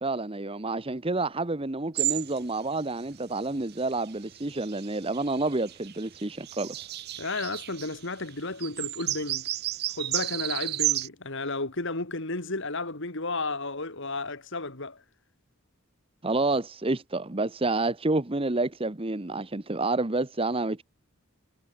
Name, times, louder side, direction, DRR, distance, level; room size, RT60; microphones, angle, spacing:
voice 1, 0.0-6.9 16.2-20.8, right 2 dB, 25° right, 1.1 m, -29 dB
sound 1, 1.9-2.4 2.8-2.9 3.6-8.0 8.3-8.4 8.6-11.1, right 15 dB, 45° right, 0.5 m, -32 dB
voice 2, 7.2-9.5 9.9-15.0, left 3 dB, 60° left, 2.9 m, -33 dB
head